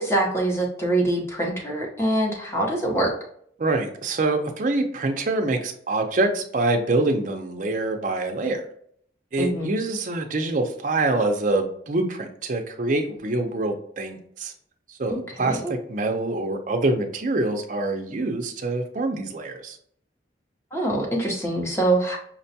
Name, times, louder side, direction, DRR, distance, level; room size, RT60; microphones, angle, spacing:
voice 1, 0.0-3.1 9.4-9.7 15.1-15.7 20.7-22.2, right 1 dB, 15° left, -1 dB, 0.8 m, -24 dB
voice 2, 3.6-8.6 9.3-14.5 15.0-19.8, right 2 dB, 45° right, 4 dB, 0.5 m, -25 dB
5.8 x 2.2 x 2.7 m, 0.62 s
head